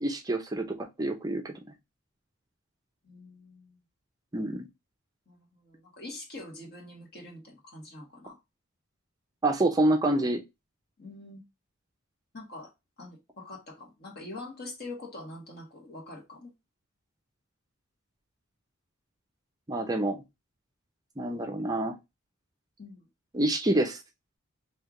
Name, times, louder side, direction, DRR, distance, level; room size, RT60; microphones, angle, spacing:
voice 1, 0.0-1.5 4.3-4.7 9.4-10.4 19.7-20.2 21.2-21.9 23.3-24.0, right 1 dB, 20° right, 0.5 m, -27 dB
voice 2, 3.0-3.8 5.3-8.4 11.0-11.4 12.3-12.7 13.0-16.5 22.8-23.1, left 2 dB, 50° left, 1.5 m, -44 dB
3.2 x 2.8 x 3.6 m
head